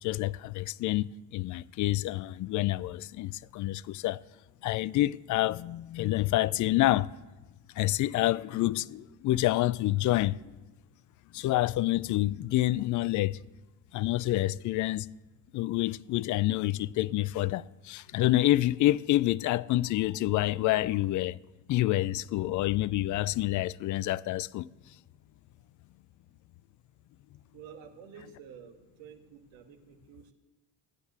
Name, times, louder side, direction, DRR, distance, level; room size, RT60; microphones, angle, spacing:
voice 1, 0.0-4.2 4.6-7.1 7.8-10.5 11.3-13.4 13.9-15.1 15.5-21.4 21.7-24.7, left 16 dB, 40° left, 0.5 m, -28 dB
voice 2, 27.5-30.3, right 7 dB, 60° right, 2.1 m, -50 dB
16.0 x 9.3 x 6.8 m
hypercardioid pair, 65°, 50 cm